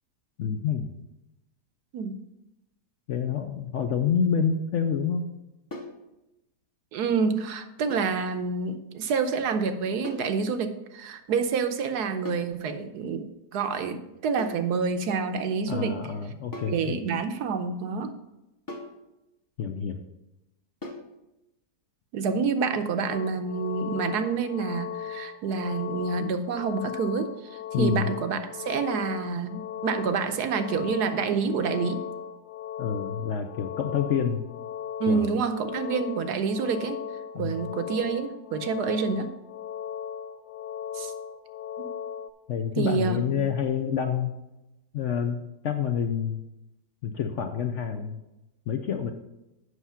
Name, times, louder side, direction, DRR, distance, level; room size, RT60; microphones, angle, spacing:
voice 1, 0.4-0.9 3.1-5.2 15.7-17.0 19.6-20.0 27.7-28.1 32.8-34.4 35.1-35.4 37.3-37.7 42.5-44.3 44.9-45.4 45.6-46.4 47.0-48.2 48.7-49.1, left 7 dB, 65° left, 6 dB, 0.8 m, -28 dB
sound 1, 5.7-6.0 7.9-8.2 10.0-10.3 12.2-12.6 14.4-14.7 16.5-16.8 18.7-19.0 20.8-21.1, left 2 dB, 15° left, 0.9 m, -39 dB
voice 2, 6.9-16.0 16.7-18.1 22.1-32.0 35.0-37.0 37.4-39.3 40.9-41.1 41.8-41.9 42.8-43.2, right 5 dB, 75° right, 8 dB, 1.3 m, -28 dB
sound 2, 23.1-42.3, left 8 dB, 85° left, 1.2 m, -37 dB
8.1 x 6.1 x 5.6 m, 0.94 s
omnidirectional pair, 1.8 m